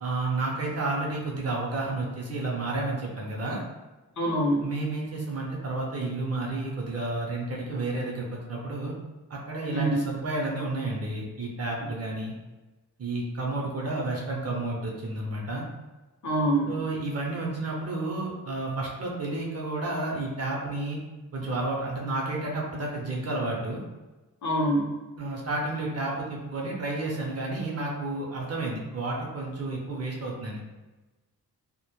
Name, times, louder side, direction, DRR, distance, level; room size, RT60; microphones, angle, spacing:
voice 1, 0.0-3.6 4.6-8.9 9.3-12.3 13.0-15.6 16.7-21.0 21.3-23.8 25.2-30.6, right 2 dB, 40° right, -2 dB, 0.6 m, -31 dB
voice 2, 4.2-4.7 9.7-10.0 16.2-16.8 24.4-25.0, right 1 dB, 45° left, -2 dB, 0.6 m, -25 dB
2.1 x 2.0 x 3.0 m, 1.1 s
wide cardioid pair, 110°, 39 cm